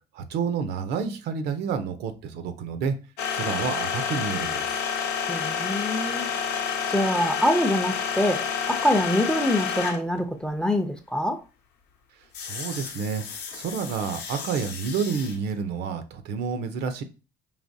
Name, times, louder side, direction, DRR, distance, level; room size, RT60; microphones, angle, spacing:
voice 1, 0.1-3.0 3.3-4.7 12.4-13.2 13.5-17.0, right 6 dB, 75° right, 0.6 m, -29 dB
sound 1, 3.2-10.2 12.3-15.4, left 7 dB, 90° left, 0.8 m, -30 dB
voice 2, 5.2-6.3 6.9-11.4, left 1 dB, 5° left, 0.5 m, -25 dB
4.9 x 2.9 x 2.7 m
cardioid pair, 110°, 17 cm